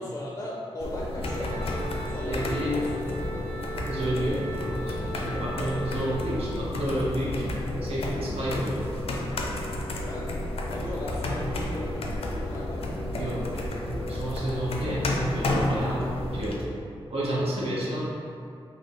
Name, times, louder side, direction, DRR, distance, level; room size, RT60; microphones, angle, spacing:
voice 1, 0.0-1.7 2.1-3.3 10.0-13.2, left 1 dB, 30° left, -4 dB, 0.4 m, -38 dB
sound 1, 0.8-16.6, left 1 dB, 80° left, 0.5 m, -31 dB
Wind instrument woodwind instrument, 1.2-6.4, right 1 dB, 45° right, 1.1 m, -39 dB
voice 2, 2.3-2.8 3.9-7.5 7.8-8.9 13.0-16.0 16.3-16.6 17.1-18.0, right 1 dB, 80° right, -7 dB, 0.9 m, -30 dB
4.1 x 2.7 x 3.7 m, 2.5 s
wide cardioid pair, 165°, 10 cm